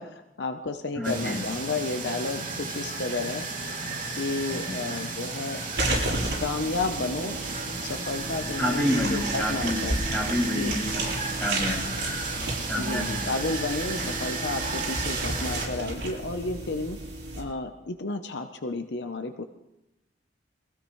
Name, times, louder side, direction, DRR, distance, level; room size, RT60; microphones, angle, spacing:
voice 1, 0.0-3.5 4.2-5.6 6.4-7.4 7.8-10.0 10.5-10.7 12.8-17.0 17.3-19.4, left 3 dB, 65° left, 7 dB, 0.8 m, -32 dB
voice 2, 0.9-1.5 4.7-4.9 8.6-9.8 10.1-11.0 11.4-11.9 12.7-13.3 14.0-14.1, left 1 dB, 10° left, -4 dB, 6.6 m, -29 dB
sound 1, 1.0-15.7, right 3 dB, 45° right, 2.7 m, -33 dB
sound 2, 5.8-17.4, right 2 dB, 60° right, 7.9 m, -33 dB
25.0 x 16.0 x 3.2 m, 0.90 s
head